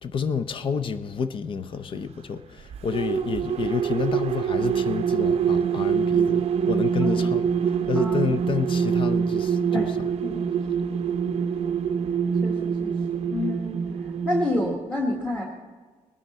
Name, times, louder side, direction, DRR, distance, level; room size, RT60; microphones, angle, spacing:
voice 1, 0.0-9.9, left 6 dB, 40° left, 0.6 m, -29 dB
sound 1, 2.6-14.8, right 7 dB, 45° right, 0.6 m, -25 dB
voice 2, 12.4-12.9 13.3-13.8 14.2-15.4, left 1 dB, 10° left, 1.4 m, -28 dB
20.0 x 9.7 x 4.2 m
cardioid pair, 170°, 14 cm